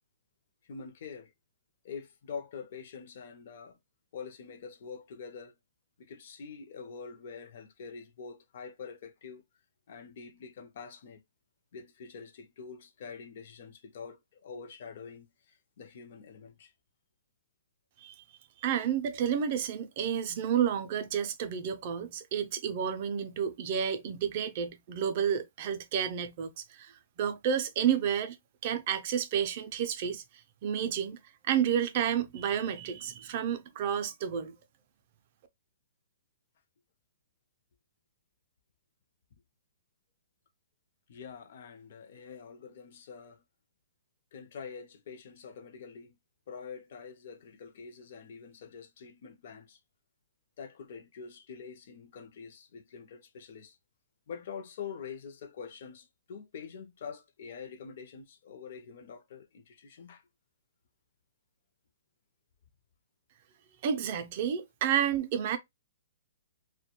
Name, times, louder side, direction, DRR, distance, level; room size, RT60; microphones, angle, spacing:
voice 1, 0.6-1.3 1.8-3.8 4.1-5.5 6.0-9.4 9.9-11.2 11.7-16.7 41.1-43.4 44.3-46.2 46.5-49.8 50.6-53.8 54.3-60.2, left 6 dB, 50° left, 0.5 m, -45 dB
voice 2, 18.6-26.9 27.2-28.4 28.6-30.2 30.6-31.2 31.5-34.6 63.8-65.6, right 8 dB, 40° right, 0.3 m, -30 dB
2.2 x 2.1 x 2.8 m
hypercardioid pair, 165°, 0 cm